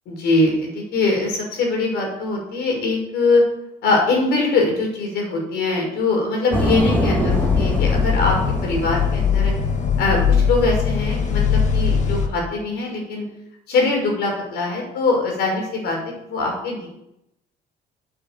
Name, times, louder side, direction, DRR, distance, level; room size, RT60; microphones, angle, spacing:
voice 1, 0.1-3.4 3.8-8.4 8.6-9.5 10.0-13.2 13.7-16.0 16.3-16.9, left 3 dB, 75° left, 0 dB, 5.8 m, -22 dB
sound 1, 6.5-10.2, left 1 dB, 10° left, 2.7 m, -24 dB
sound 2, 7.3-12.3, left 6 dB, 45° left, 1.7 m, -20 dB
9.9 x 8.6 x 7.5 m, 0.84 s
cardioid pair, 110°, 17 cm